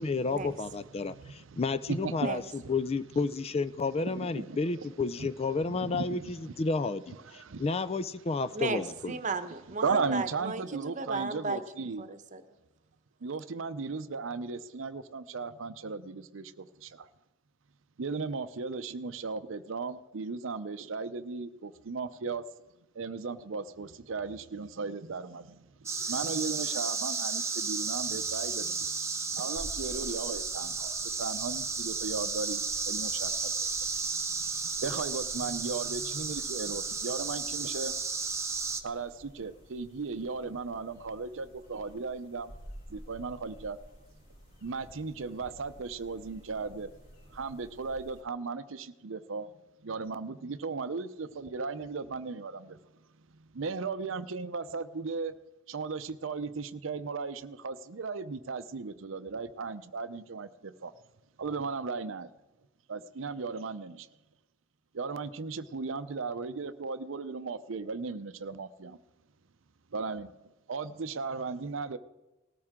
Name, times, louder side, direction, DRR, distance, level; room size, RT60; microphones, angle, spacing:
voice 1, 0.0-2.4 2.7-9.1, left 3 dB, 30° left, 15 dB, 0.4 m, -31 dB
voice 2, 1.0-1.6 1.9-2.3 2.6-2.7 4.0-4.9 5.2-5.3 5.7-6.5 7.2-7.7 9.8-12.1 13.2-17.1 18.0-22.4 22.9-33.7 34.1-38.0 38.8-42.5 42.9-43.8 44.6-46.9 47.3-49.5 49.8-52.8 53.5-55.3 55.7-60.9 61.4-62.3 62.9-64.1 64.9-69.0 69.9-70.3 70.7-72.0, right 4 dB, 70° right, 12 dB, 0.6 m, -36 dB
voice 3, 8.5-12.4, right 3 dB, 40° right, 10 dB, 1.0 m, -35 dB
sound 1, 25.9-38.8, right 4 dB, 15° right, 0.9 m, -33 dB
sound 2, 29.6-48.2, equal, 45° left, 4.6 m, -52 dB
19.0 x 13.5 x 3.7 m, 1.1 s
head